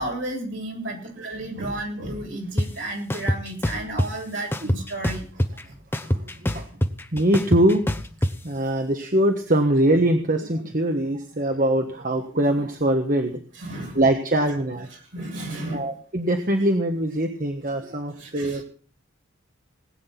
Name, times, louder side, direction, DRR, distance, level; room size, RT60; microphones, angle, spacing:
voice 1, 0.0-5.2 13.6-14.0 15.1-15.9 18.2-18.6, right 1 dB, 65° right, 0 dB, 7.8 m, -32 dB
sound 1, 2.6-2.7 3.1-4.1 4.5-5.6 5.9-8.3, equal, 10° left, 0.9 m, -24 dB
voice 2, 6.0-6.7 7.1-7.9 8.4-13.4 13.9-14.9 15.7-18.6, right 1 dB, 40° right, 4 dB, 1.4 m, -22 dB
19.5 x 8.9 x 6.0 m, 0.42 s
head